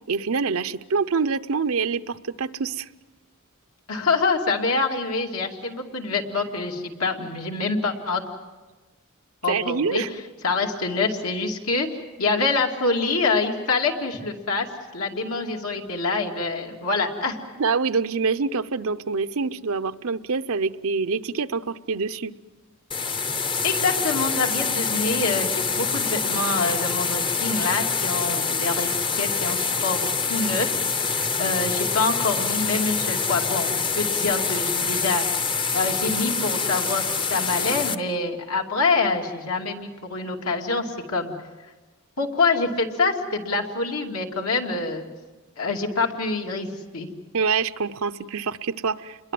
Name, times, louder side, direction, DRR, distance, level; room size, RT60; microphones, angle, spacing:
voice 1, 0.0-2.9 9.5-10.1 17.6-22.3 47.3-49.2, right 5 dB, 70° right, 11 dB, 0.7 m, -25 dB
voice 2, 3.9-8.2 9.4-10.0 10.4-11.9 12.2-14.7 14.9-17.4 23.6-28.9 29.1-30.7 30.9-35.3 35.7-41.3 42.2-45.1 45.6-47.1, left 3 dB, 75° left, 2 dB, 2.7 m, -26 dB
sound 1, 22.9-38.0, left 5 dB, 25° left, 0.8 m, -25 dB
28.5 x 22.0 x 7.7 m, 1.3 s
head